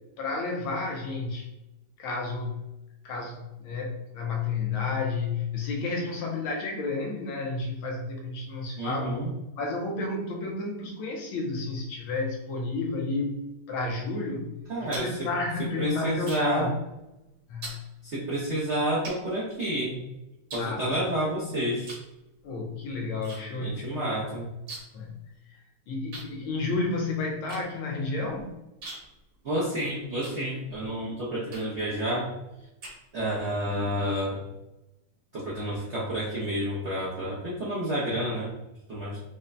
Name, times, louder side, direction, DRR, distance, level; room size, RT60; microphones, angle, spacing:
voice 1, 0.2-1.5 2.0-2.7 3.0-9.1 9.6-14.5 14.8-16.7 17.5-17.8 20.6-20.9 22.4-24.4 24.9-25.2 25.9-28.6, left 3 dB, 80° left, 1 dB, 1.5 m, -31 dB
voice 2, 8.8-9.3 14.7-15.3 15.8-16.7 18.0-20.0 20.5-21.9 23.6-24.5 29.4-32.3 33.1-34.4 35.3-38.5 38.9-39.2, right 1 dB, 70° right, -7 dB, 0.6 m, -29 dB
Male kisses, 14.6-16.7 16.9-17.2 17.6-17.8 18.5-18.6 19.0-20.0 20.5-21.4 21.8-22.1 22.4-23.4 23.7-23.8 24.0-25.1 25.3-25.4 26.1-30.9 31.5-31.9 32.4-33.4, right 2 dB, 50° right, 1.4 m, -43 dB
5.4 x 2.1 x 2.6 m, 0.95 s
omnidirectional pair, 2.3 m